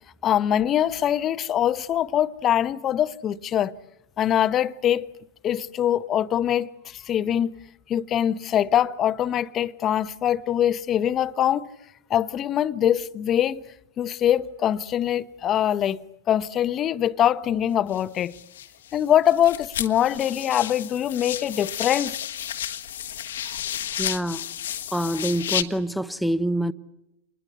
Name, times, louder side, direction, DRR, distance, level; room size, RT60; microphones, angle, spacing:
voice 1, 0.2-3.7 4.2-5.1 5.4-7.5 7.9-11.7 12.1-13.6 14.0-18.4 18.9-22.2, left 10 dB, 30° left, 1.0 m, -23 dB
sound 1, 17.9-19.0 19.3-25.6, left 10 dB, 75° left, 1.4 m, -32 dB
voice 2, 24.0-24.4 24.9-26.7, right 1 dB, ahead, 1.0 m, -26 dB
27.5 x 20.5 x 8.3 m
hypercardioid pair, 105°, 0 cm